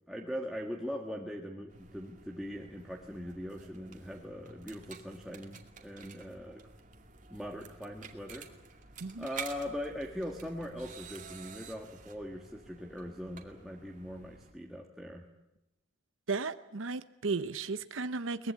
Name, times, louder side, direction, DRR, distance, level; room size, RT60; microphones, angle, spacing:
voice 1, 0.1-6.7 7.3-8.5 9.2-15.2, equal, ahead, -1 dB, 1.6 m, -41 dB
sound 1, 1.7-14.5, right 5 dB, 40° right, 2.4 m, -50 dB
voice 2, 16.3-18.5, right 4 dB, 80° right, 12 dB, 0.8 m, -35 dB
23.0 x 20.5 x 8.6 m, 0.92 s
head